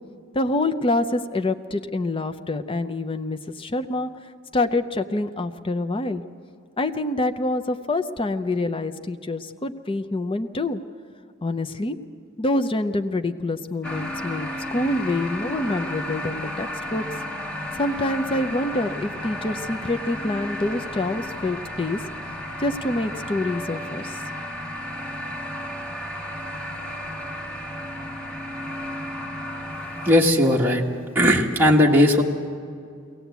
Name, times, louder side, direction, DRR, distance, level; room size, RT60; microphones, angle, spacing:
voice 1, 0.3-6.2 6.8-10.8 11.4-12.0 12.4-17.0 17.7-22.0 22.6-24.2, left 2 dB, 25° left, 8 dB, 0.6 m, -26 dB
sound 1, 13.8-30.2, left 1 dB, 5° left, 1.8 m, -33 dB
voice 2, 30.0-30.8 31.1-32.2, left 1 dB, 10° right, -3 dB, 1.3 m, -17 dB
22.5 x 18.0 x 8.1 m, 2.4 s
head